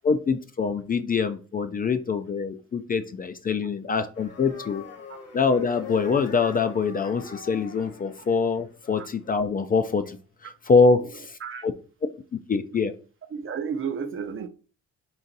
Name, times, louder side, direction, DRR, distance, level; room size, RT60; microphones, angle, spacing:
voice 1, 0.0-4.8 5.3-11.7 12.5-12.9, left 4 dB, 30° left, 0.4 m, -24 dB
sound 1, 4.1-9.3, left 5 dB, 55° left, 1.3 m, -43 dB
voice 2, 13.3-14.5, right 6 dB, 45° right, 0.6 m, -32 dB
4.0 x 2.5 x 3.9 m
cardioid pair, 90°, 30 cm